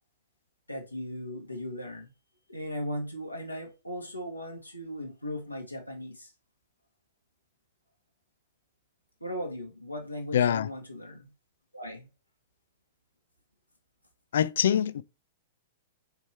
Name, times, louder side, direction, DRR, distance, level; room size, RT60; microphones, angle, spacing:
voice 1, 0.7-2.1 2.5-6.3 9.2-11.3 11.7-12.1, equal, 90° left, 1.8 m, -37 dB
voice 2, 10.3-10.7 14.3-15.0, left 9 dB, 60° left, 0.4 m, -24 dB
6.5 x 4.3 x 4.5 m
figure-of-eight pair, 105°, 0 cm